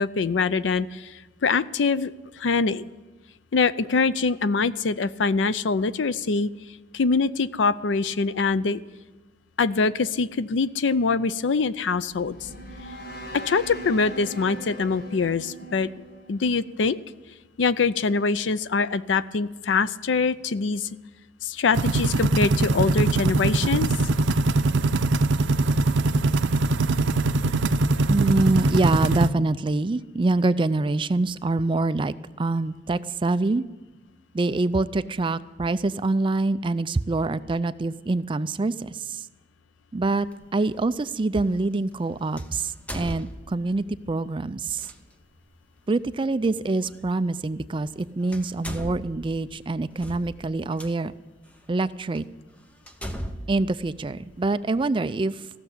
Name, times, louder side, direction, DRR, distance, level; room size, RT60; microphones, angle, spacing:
voice 1, 0.0-2.1 2.4-2.8 3.5-6.5 6.9-8.8 9.6-12.5 13.3-15.9 16.3-17.0 17.6-20.9 21.4-23.9, left 4 dB, 90° left, 16 dB, 0.5 m, -24 dB
sound 1, 11.8-17.0, equal, 55° left, 1.5 m, -40 dB
sound 2, 21.7-29.3, right 2 dB, 90° right, 0.6 m, -22 dB
voice 2, 28.1-33.6 34.3-39.2 39.9-40.3 40.5-44.9 45.9-51.1 51.7-52.3 53.5-55.4, right 2 dB, 30° right, 14 dB, 0.4 m, -25 dB
sound 3, 40.3-40.4 42.4-43.8 44.8-45.0 46.8-46.9 47.9-48.0 48.3-50.9 51.6-51.7 52.1-52.2 52.9-54.6, equal, 5° left, 0.9 m, -37 dB
15.5 x 6.8 x 10.0 m, 1.2 s
head